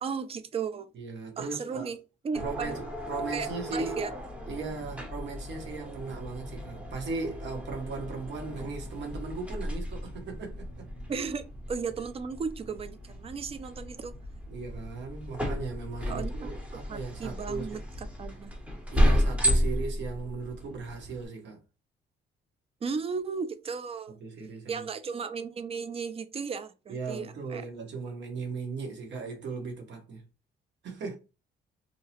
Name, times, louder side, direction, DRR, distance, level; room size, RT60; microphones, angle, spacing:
voice 1, 0.0-0.9 1.4-2.0 2.2-2.8 3.3-4.1 11.1-14.1 16.1-16.5 16.9-18.5 22.8-24.2 24.7-27.6, right 5 dB, 30° right, 0.4 m, -35 dB
voice 2, 0.9-1.9 2.4-4.0 4.5-10.9 14.5-17.8 18.9-21.6 24.2-24.9 26.9-30.2 30.8-31.1, right 4 dB, 65° right, 1.0 m, -37 dB
sound 1, 2.3-21.3, equal, 5° right, 0.7 m, -33 dB
2.7 x 2.0 x 2.8 m
cardioid pair, 90°, 20 cm